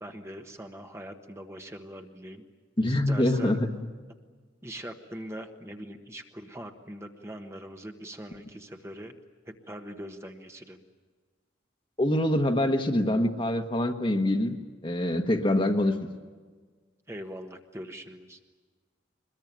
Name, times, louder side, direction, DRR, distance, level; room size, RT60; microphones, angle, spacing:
voice 1, 0.0-2.4 2.8-3.6 4.6-9.1 9.4-10.8 17.1-18.4, equal, 15° right, 4 dB, 1.3 m, -42 dB
voice 2, 2.8-3.7 12.0-14.6 14.8-16.1, left 1 dB, 25° left, 5 dB, 1.4 m, -25 dB
23.5 x 21.5 x 9.3 m, 1.4 s
head